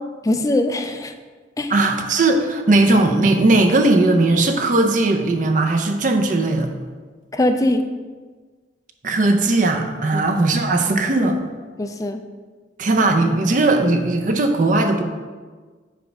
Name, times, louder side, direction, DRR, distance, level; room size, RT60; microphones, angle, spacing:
voice 1, 0.2-1.1 1.6-1.7 7.3-7.9 10.1-10.2 11.8-12.2, left 1 dB, 20° left, 7 dB, 0.4 m, -21 dB
voice 2, 1.7-6.7 9.0-11.4 12.8-15.0, right 2 dB, 45° right, 5 dB, 0.6 m, -18 dB
5.0 x 4.6 x 5.2 m, 1.4 s
head